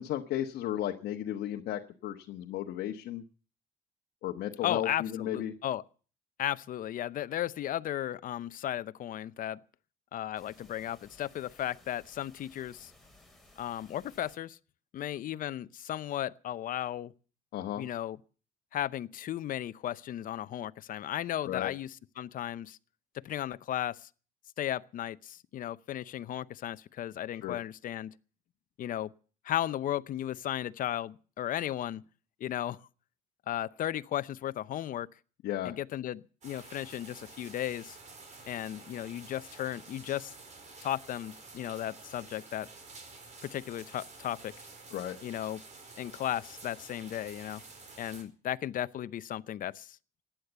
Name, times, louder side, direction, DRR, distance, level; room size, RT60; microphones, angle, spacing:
voice 1, 0.0-3.2 4.2-5.5 17.5-17.8 21.5-21.7 27.4-27.6 35.4-35.8 44.9-45.2, left 12 dB, 70° left, 1.2 m, -34 dB
voice 2, 4.6-5.8 6.4-9.6 10.1-12.9 13.6-14.6 14.9-17.1 17.8-18.2 18.7-22.8 23.1-24.1 24.6-28.1 28.8-29.1 29.4-32.0 32.4-32.8 33.5-35.1 35.6-38.0 38.5-40.3 40.8-42.7 43.4-44.5 45.2-45.6 46.0-47.6 48.0-50.0, left 12 dB, 55° left, 0.7 m, -35 dB
sound 1, 10.4-14.4, left 1 dB, ahead, 4.6 m, -59 dB
sound 2, 36.4-48.2, right 3 dB, 45° right, 4.5 m, -50 dB
15.0 x 10.5 x 8.1 m
cardioid pair, 110°, 17 cm